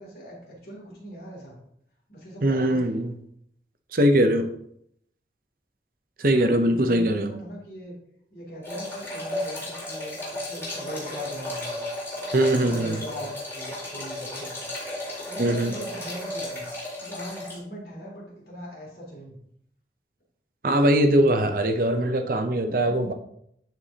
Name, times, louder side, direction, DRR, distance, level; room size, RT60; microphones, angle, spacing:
voice 1, 0.0-1.6 2.1-3.0 6.3-7.9 8.3-11.8 12.5-14.7 15.1-16.6 17.0-19.4, equal, 55° left, -3 dB, 2.8 m, -40 dB
voice 2, 2.4-3.1 3.9-4.5 6.2-7.3 12.3-13.0 15.4-15.7 20.6-23.1, right 1 dB, 50° right, 7 dB, 0.7 m, -21 dB
sound 1, 8.6-17.6, left 1 dB, 15° left, 2.5 m, -34 dB
11.5 x 4.7 x 2.9 m, 0.72 s
head